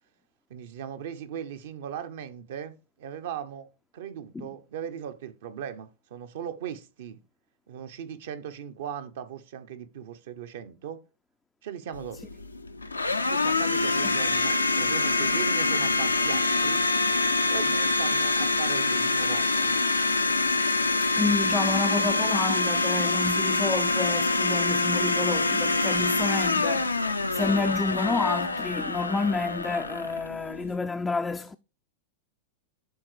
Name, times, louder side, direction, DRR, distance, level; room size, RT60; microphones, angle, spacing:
voice 1, 0.5-3.7 3.9-7.2 7.7-11.0 11.6-12.2 13.3-16.8 17.5-19.8, right 9 dB, 60° right, 1.0 m, -38 dB
Domestic sounds home sounds, 11.9-30.8, left 3 dB, 85° left, 0.6 m, -25 dB
voice 2, 21.0-31.6, left 3 dB, 10° left, 0.4 m, -29 dB
11.0 x 3.9 x 4.8 m
figure-of-eight pair, 95°, 0 cm